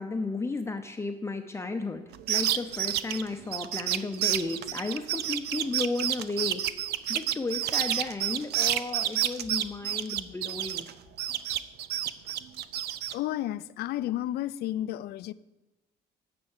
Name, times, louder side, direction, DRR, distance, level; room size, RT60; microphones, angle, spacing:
voice 1, 0.0-6.6 7.1-10.9, left 3 dB, 15° left, 0.7 m, -33 dB
sound 1, 2.1-10.9 11.2-13.1, right 12 dB, 75° right, 0.6 m, -29 dB
voice 2, 13.1-15.3, left 13 dB, 70° left, 0.5 m, -32 dB
10.0 x 6.8 x 7.2 m
cardioid pair, 110°, 17 cm